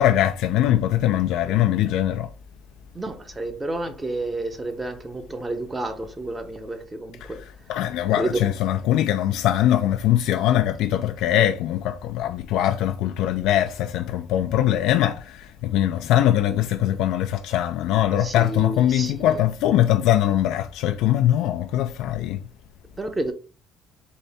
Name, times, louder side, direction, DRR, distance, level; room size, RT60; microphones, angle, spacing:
voice 1, 0.0-2.3 7.2-7.3 7.7-22.4, left 12 dB, 80° left, 0.4 m, -22 dB
voice 2, 2.9-7.4 8.2-8.4 18.2-19.4 23.0-23.3, right 2 dB, 15° right, 0.8 m, -30 dB
4.1 x 3.3 x 3.5 m
cardioid pair, 120°, 0 cm